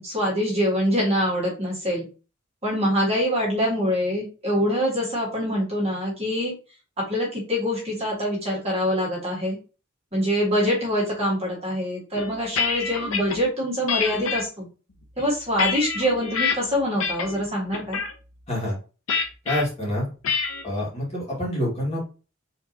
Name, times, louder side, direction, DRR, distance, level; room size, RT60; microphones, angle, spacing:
voice 1, 0.0-2.0 2.6-6.5 7.1-9.6 10.1-14.7 15.2-18.0, equal, 30° right, -5 dB, 1.9 m, -24 dB
sound 1, 12.2-13.4 13.9-14.4 15.0-16.5 17.0-17.4 17.7-18.1 19.1-19.6 20.2-20.6, left 5 dB, 85° left, 0.8 m, -26 dB
voice 2, 19.4-20.1 20.6-22.0, left 1 dB, 30° left, -6 dB, 2.1 m, -26 dB
4.4 x 3.5 x 2.9 m, 0.34 s
head